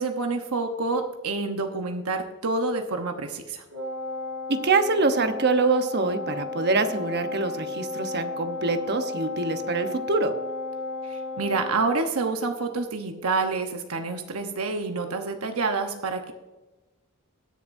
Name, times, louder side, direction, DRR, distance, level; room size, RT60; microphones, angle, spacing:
voice 1, 0.0-3.6 11.1-16.3, right 3 dB, 85° right, 5 dB, 1.0 m, -28 dB
Wind instrument woodwind instrument, 3.7-11.9, left 3 dB, 70° right, 2.2 m, -34 dB
voice 2, 4.5-10.3, right 3 dB, 50° right, 8 dB, 0.9 m, -24 dB
21.0 x 7.1 x 2.6 m, 1.1 s
head